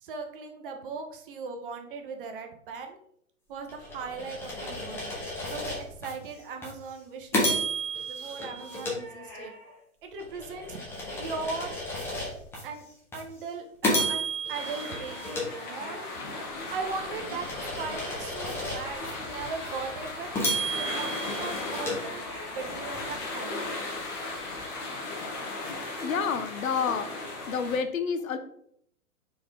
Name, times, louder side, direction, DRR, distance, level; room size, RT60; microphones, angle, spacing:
voice 1, 0.0-3.0 3.5-5.1 5.4-7.6 8.1-9.5 10.0-10.8 11.2-11.7 12.6-12.8 13.1-16.1 16.7-17.5 17.8-20.3 20.8-23.7, right 4 dB, 40° right, 5 dB, 0.7 m, -38 dB
sound 1, 3.7-6.1 6.6-6.8 7.3-9.7 10.2-12.6 13.1-13.3 13.8-16.2 16.7-19.1 19.6-19.7 20.3-22.7, equal, 5° left, 0.6 m, -33 dB
sound 2, 14.5-27.8, left 2 dB, 30° left, 1.2 m, -37 dB
voice 2, 26.0-27.1 27.5-28.4, left 6 dB, 65° left, 10 dB, 0.7 m, -29 dB
4.4 x 3.5 x 3.3 m, 0.68 s
figure-of-eight pair, 120°, 44 cm